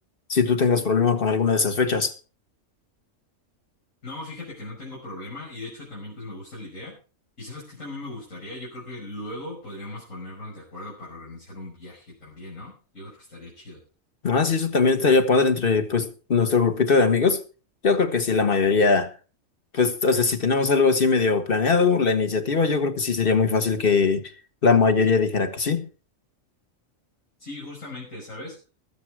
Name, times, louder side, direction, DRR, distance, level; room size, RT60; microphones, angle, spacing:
voice 1, 0.3-2.1 14.2-17.4 17.8-19.1 19.7-24.2 24.6-25.9, left 4 dB, 45° left, 1.5 m, -21 dB
voice 2, 4.0-7.0 7.4-13.8 27.4-28.6, left 2 dB, 80° left, 6.2 m, -38 dB
19.5 x 7.6 x 4.8 m
omnidirectional pair, 1.4 m